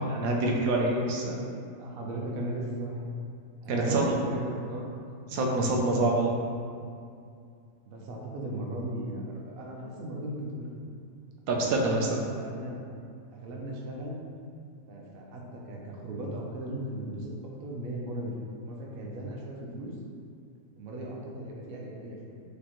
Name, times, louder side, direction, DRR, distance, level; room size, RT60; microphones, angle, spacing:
voice 1, 0.1-1.5 3.7-4.0 5.3-6.3 11.5-12.2, right 2 dB, 80° right, -1 dB, 1.0 m, -26 dB
voice 2, 1.8-3.1 3.6-5.0 7.9-10.7 11.6-12.9 13.3-14.2 14.9-18.3 18.6-19.9 20.8-22.4, right 1 dB, 65° right, -2 dB, 0.6 m, -37 dB
4.9 x 2.1 x 2.9 m, 2.4 s
omnidirectional pair, 1.5 m